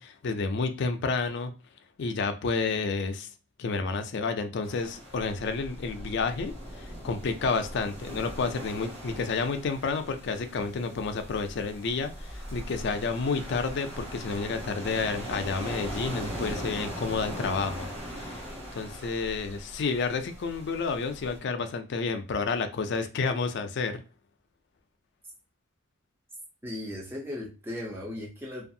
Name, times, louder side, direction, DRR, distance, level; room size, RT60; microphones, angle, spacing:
voice 1, 0.0-1.5 2.0-3.3 3.6-17.9 18.2-18.4 18.7-24.0, left 4 dB, 55° left, 7 dB, 0.4 m, -30 dB
sound 1, 4.6-21.4, equal, 30° right, 1.3 m, -40 dB
voice 2, 26.6-28.7, left 1 dB, 10° right, -3 dB, 0.6 m, -37 dB
2.5 x 2.3 x 2.6 m, 0.33 s
head